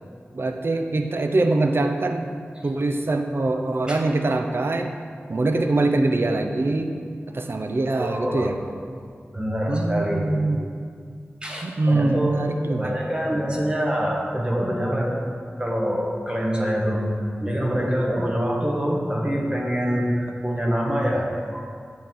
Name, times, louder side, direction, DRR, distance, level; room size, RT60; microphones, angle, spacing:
voice 1, 0.3-2.3 2.6-4.9 5.3-6.9 7.3-8.6 9.7-10.7 11.6-13.0, right 2 dB, 60° right, 5 dB, 0.5 m, -23 dB
voice 2, 8.0-8.5 9.3-10.2 11.4-12.4 12.7-15.2 15.6-21.7, equal, 20° right, -2 dB, 1.2 m, -25 dB
8.5 x 3.7 x 5.8 m, 2.1 s
wide cardioid pair, 60°, 4 cm